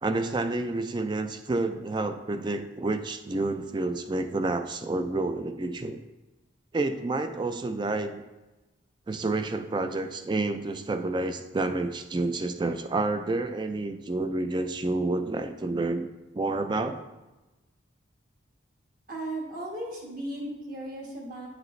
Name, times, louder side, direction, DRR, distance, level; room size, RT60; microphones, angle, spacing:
voice 1, 0.0-6.0 6.7-8.2 9.1-16.1 16.3-17.0, right 2 dB, 25° right, 9 dB, 0.3 m, -29 dB
voice 2, 19.1-21.5, right 1 dB, 45° right, -2 dB, 1.6 m, -36 dB
9.1 x 5.1 x 3.1 m, 1.1 s
head